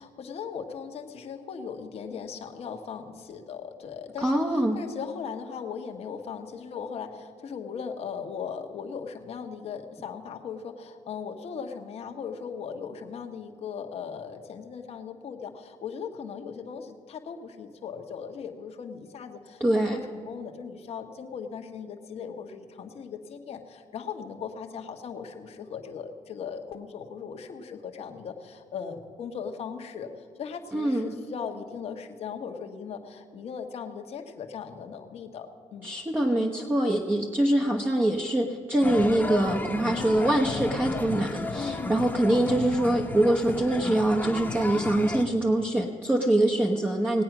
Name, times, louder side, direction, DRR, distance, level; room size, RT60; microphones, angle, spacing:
voice 1, 0.0-35.9 41.5-42.0, left 6 dB, 60° left, 4 dB, 1.3 m, -38 dB
voice 2, 4.2-4.8 19.6-20.0 30.7-31.1 35.8-47.2, right 1 dB, 15° right, 0 dB, 1.0 m, -24 dB
sound 1, 38.8-45.2, left 2 dB, 15° left, 1.1 m, -33 dB
18.5 x 8.6 x 6.0 m, 2.1 s
cardioid pair, 90°, 12 cm